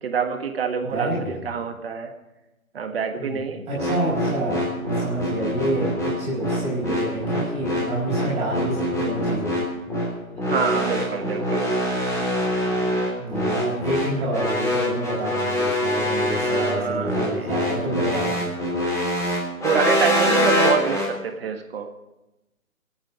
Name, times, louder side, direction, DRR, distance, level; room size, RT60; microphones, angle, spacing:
voice 1, 0.0-2.1 2.7-3.7 10.5-11.8 16.4-17.8 19.6-21.9, right 6 dB, 45° right, 6 dB, 1.6 m, -27 dB
voice 2, 0.8-1.4 3.2-3.4 3.7-9.5 13.1-18.6, right 1 dB, 15° right, -6 dB, 5.1 m, -28 dB
sound 1, 3.8-21.1, equal, 5° left, 3.6 m, -24 dB
27.0 x 9.0 x 4.9 m, 0.98 s
figure-of-eight pair, 140°, 42 cm